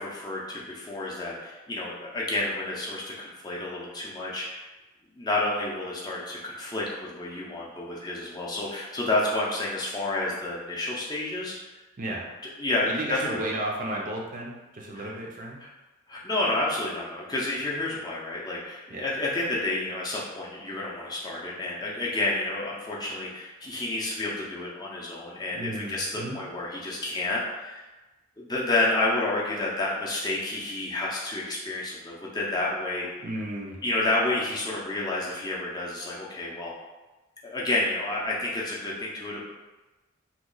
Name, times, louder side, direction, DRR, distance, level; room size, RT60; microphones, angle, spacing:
voice 1, 0.0-4.7 5.1-11.5 12.6-13.4 14.9-15.1 15.6-15.7 16.1-27.8 28.4-33.1 33.8-36.7 37.4-39.4, left 2 dB, 20° left, -5 dB, 0.5 m, -30 dB
voice 2, 12.9-15.6 18.9-19.1 25.5-26.4 33.2-33.8, right 1 dB, 40° right, -2 dB, 0.5 m, -33 dB
3.0 x 2.2 x 3.8 m, 1.1 s
head